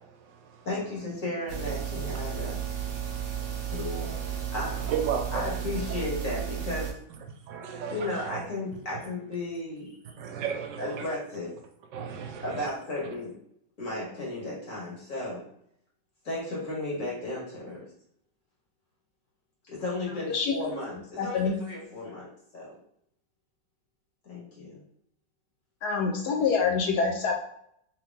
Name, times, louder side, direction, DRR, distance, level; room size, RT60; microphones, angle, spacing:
voice 1, 0.0-0.7 3.4-4.5 4.9-5.4 5.9-6.0 7.5-8.4 10.2-11.1 11.9-12.7, right 7 dB, 80° right, 4 dB, 1.3 m, -35 dB
voice 2, 0.7-2.6 3.7-4.9 5.3-6.9 7.9-10.0 10.8-11.5 12.4-13.3 13.8-15.4 16.3-17.8 19.7-22.3 22.5-22.7 24.2-24.8, left 2 dB, 45° left, -5 dB, 1.9 m, -34 dB
sound 1, 1.5-6.9, right 8 dB, 55° right, 0.9 m, -33 dB
voice 3, 21.2-21.6 25.8-27.3, left 5 dB, 70° left, 2 dB, 1.1 m, -26 dB
3.5 x 3.2 x 3.5 m, 0.70 s
omnidirectional pair, 1.9 m